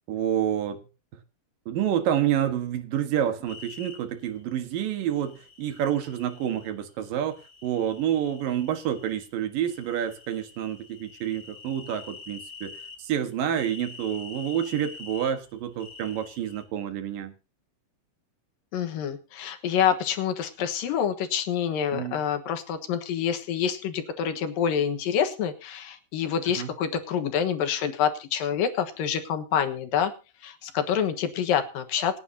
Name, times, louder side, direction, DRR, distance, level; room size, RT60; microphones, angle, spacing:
voice 1, 0.1-0.9 1.7-17.3 21.9-22.2 26.5-26.7, right 10 dB, 75° right, 3.2 m, -28 dB
sound 1, 3.5-4.0 5.1-6.7 7.3-9.2 9.6-13.0 13.5-15.3 15.8-16.6, left 4 dB, 30° left, 4.1 m, -46 dB
voice 2, 18.7-30.1 30.4-32.2, left 8 dB, 80° left, 3.1 m, -27 dB
27.5 x 9.3 x 2.8 m
omnidirectional pair, 4.0 m